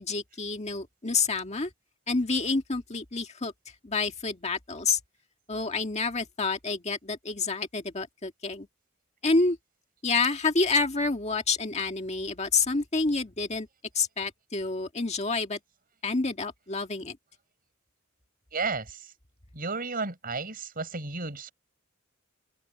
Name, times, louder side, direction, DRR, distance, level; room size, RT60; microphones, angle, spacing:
voice 1, 0.0-1.7 2.1-3.5 3.8-5.0 5.5-8.7 9.2-9.6 10.0-13.7 13.9-15.6 16.0-17.2, left 3 dB, 35° left, 1.8 m, -28 dB
voice 2, 18.5-19.1 19.5-21.5, right 4 dB, 45° right, 6.5 m, -33 dB
head